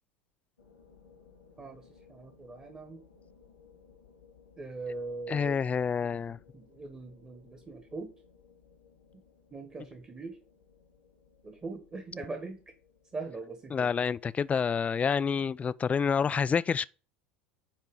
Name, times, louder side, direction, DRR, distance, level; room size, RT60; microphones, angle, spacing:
sound 1, 0.6-15.6, left 5 dB, 80° left, 2.0 m, -61 dB
voice 1, 1.6-3.0 4.6-5.6 6.0-8.1 9.5-10.4 11.4-12.6 13.1-13.9, right 3 dB, 20° right, 1.4 m, -41 dB
voice 2, 5.3-6.4 13.7-16.8, left 6 dB, 20° left, 0.4 m, -28 dB
9.8 x 3.3 x 4.6 m
figure-of-eight pair, 75°, 6 cm